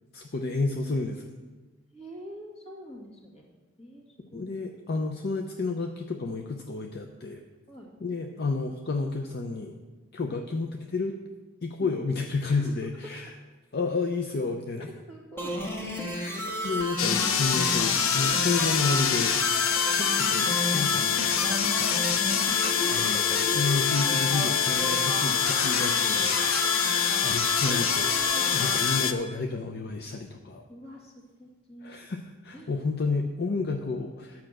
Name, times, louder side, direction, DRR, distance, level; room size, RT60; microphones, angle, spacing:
voice 1, 0.1-1.3 4.3-7.4 8.0-9.8 10.1-11.2 11.6-13.3 13.7-14.9 16.1-19.4 19.9-22.2 22.9-26.8 27.2-28.2 28.5-30.6 31.8-34.4, left 3 dB, 50° left, 4 dB, 0.6 m, -31 dB
voice 2, 1.9-3.5 3.8-4.0 4.3-4.5 7.7-7.9 10.3-10.4 11.8-11.9 12.5-12.7 14.8-15.6 16.8-16.9 19.8-20.7 22.4-23.1 27.2-28.7 30.7-31.9 32.5-33.1, equal, 30° left, -1 dB, 2.1 m, -46 dB
sound 1, 15.4-29.0, equal, 10° left, 1.5 m, -32 dB
sound 2, 17.0-29.1, left 8 dB, 85° left, 0.8 m, -25 dB
10.0 x 5.8 x 7.5 m, 1.3 s
head